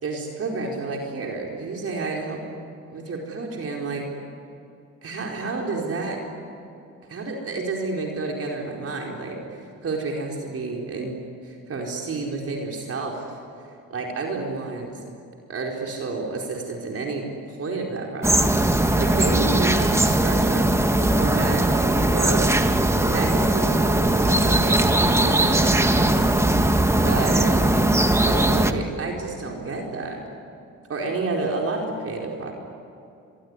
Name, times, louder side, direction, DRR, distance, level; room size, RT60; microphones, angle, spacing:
voice 1, 0.0-2.4 2.9-4.1 5.0-6.2 7.1-9.4 9.8-13.4 13.9-15.0 15.5-17.3 17.6-20.7 21.0-22.4 23.0-27.6 28.2-30.2 30.9-32.5, right 3 dB, 50° right, -1 dB, 4.5 m, -30 dB
sound 1, 18.2-28.7, right 1 dB, 10° right, 1.6 m, -19 dB
26.5 x 22.5 x 9.8 m, 2.6 s
cardioid pair, 90°, 30 cm